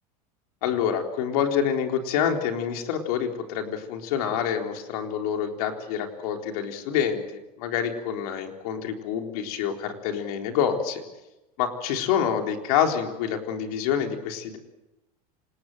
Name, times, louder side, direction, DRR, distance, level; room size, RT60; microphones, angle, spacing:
voice 1, 0.6-7.2 7.6-11.0 11.6-14.6, left 8 dB, 70° left, 4 dB, 3.9 m, -27 dB
26.5 x 19.5 x 8.0 m, 0.99 s
supercardioid pair, 130°, 19 cm